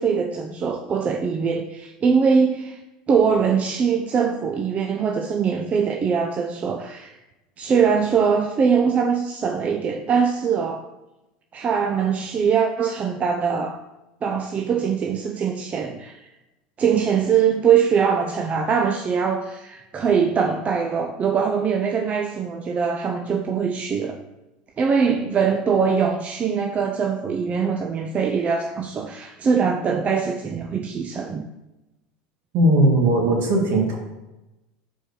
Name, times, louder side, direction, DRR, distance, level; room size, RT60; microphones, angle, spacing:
voice 1, 0.0-2.8 3.1-7.2 7.6-10.8 11.5-13.8 14.2-16.3 16.8-24.2 24.8-31.5, right 6 dB, 30° right, 4 dB, 0.5 m, -22 dB
voice 2, 32.5-34.0, right 1 dB, 60° right, 0 dB, 1.8 m, -18 dB
4.5 x 4.4 x 5.2 m, 1.0 s
hypercardioid pair, 95°, 4 cm